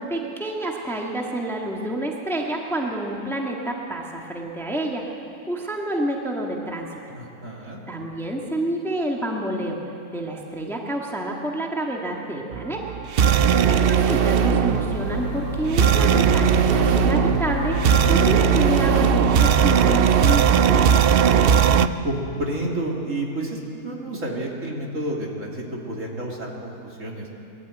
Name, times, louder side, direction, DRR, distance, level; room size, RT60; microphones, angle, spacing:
voice 1, 0.0-7.2 7.9-9.8 10.1-12.9 13.7-21.2, right 1 dB, ahead, -1 dB, 1.6 m, -29 dB
voice 2, 7.1-7.8 21.4-27.3, right 1 dB, 55° right, -1 dB, 3.0 m, -30 dB
sound 1, 12.5-21.9, right 8 dB, 85° right, 0.5 m, -19 dB
sound 2, 14.5-19.8, left 1 dB, 65° left, 2.4 m, -28 dB
21.5 x 13.5 x 9.2 m, 2.8 s
omnidirectional pair, 1.7 m